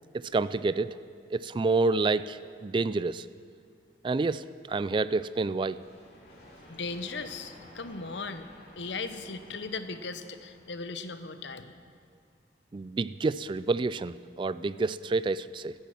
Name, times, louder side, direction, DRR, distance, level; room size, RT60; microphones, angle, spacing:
voice 1, 0.1-1.0 1.3-3.3 4.0-5.8 12.7-15.7, right 3 dB, 25° right, 16 dB, 0.3 m, -28 dB
sound 1, 5.7-11.4, left 1 dB, 60° left, 3.3 m, -53 dB
voice 2, 6.7-8.5 8.8-11.7, left 4 dB, 85° left, 10 dB, 0.9 m, -37 dB
15.0 x 11.0 x 7.6 m, 2.3 s
head